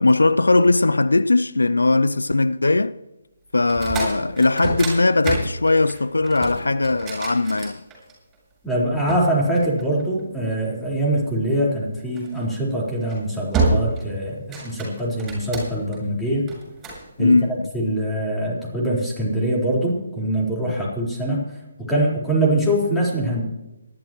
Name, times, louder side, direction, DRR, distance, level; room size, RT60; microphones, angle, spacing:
voice 1, 0.0-3.0 3.5-7.8 17.2-17.7, left 2 dB, 80° left, 0.5 m, -19 dB
sound 1, 3.6-8.3 9.1-10.4 12.1-12.4 12.9-13.2 13.5-14.1 14.4-16.0 16.5-17.0, right 3 dB, 15° right, 6.7 m, -27 dB
voice 2, 8.6-16.5 17.2-21.4 21.9-23.4, right 1 dB, 5° left, 4.4 m, -23 dB
27.0 x 12.0 x 3.1 m
figure-of-eight pair, 145°, 0 cm